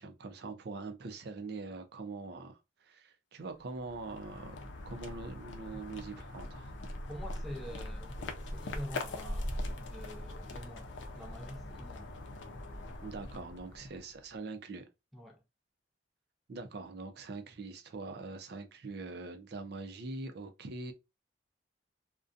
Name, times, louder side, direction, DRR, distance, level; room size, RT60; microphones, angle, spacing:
voice 1, 0.0-4.6 4.9-6.7 13.0-14.9 16.5-20.9, right 3 dB, 60° right, 0.4 m, -43 dB
sound 1, 3.6-14.3, left 1 dB, 75° left, 0.5 m, -42 dB
voice 2, 7.1-12.2 15.1-15.4, equal, ahead, 0.5 m, -46 dB
2.5 x 2.1 x 2.4 m
head